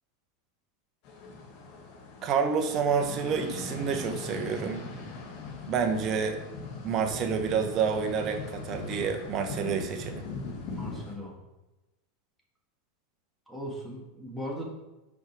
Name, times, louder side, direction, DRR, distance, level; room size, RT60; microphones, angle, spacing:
sound 1, 1.0-11.1, left 4 dB, 50° left, 1.3 m, -40 dB
voice 1, 2.2-4.8 5.7-6.4 6.8-10.2, right 6 dB, 35° right, 5 dB, 0.9 m, -28 dB
voice 2, 10.7-11.3 13.5-14.7, equal, ahead, -4 dB, 1.6 m, -38 dB
5.3 x 4.9 x 4.6 m, 1.1 s
supercardioid pair, 140°, 0 cm